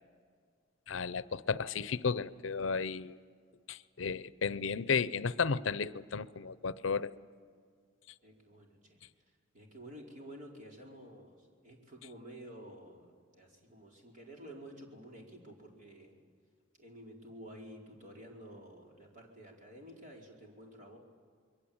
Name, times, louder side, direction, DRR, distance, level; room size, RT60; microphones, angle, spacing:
voice 1, 0.9-3.2 3.7-7.1, left 5 dB, 70° left, 0.7 m, -33 dB
voice 2, 8.2-9.0 9.5-16.2 16.8-21.0, equal, 40° right, 4.8 m, -51 dB
28.0 x 22.0 x 8.8 m
head